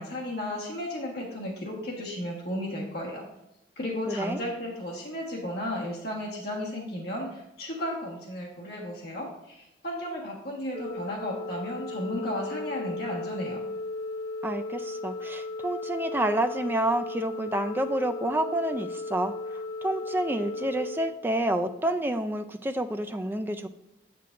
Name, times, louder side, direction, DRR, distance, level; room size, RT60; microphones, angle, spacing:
voice 1, 0.0-3.2 3.8-13.6, left 1 dB, 60° left, -2 dB, 1.4 m, -34 dB
voice 2, 4.1-4.4 14.4-19.3 19.8-23.7, right 1 dB, 10° right, 7 dB, 0.4 m, -29 dB
Organ, 10.7-21.8, left 3 dB, 35° left, 1.0 m, -36 dB
8.3 x 7.5 x 2.5 m, 0.88 s
head